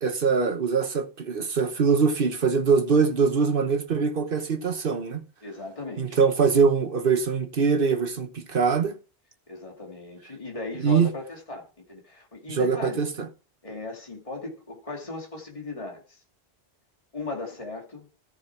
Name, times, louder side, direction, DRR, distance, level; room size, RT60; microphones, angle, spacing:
voice 1, 0.0-5.2 6.0-9.0 10.8-11.1 12.5-13.3, right 5 dB, 55° right, 1.3 m, -23 dB
voice 2, 5.4-6.2 9.5-13.1 13.6-16.2 17.1-18.1, left 3 dB, 30° left, 2.4 m, -37 dB
14.0 x 6.7 x 4.6 m
omnidirectional pair, 1.1 m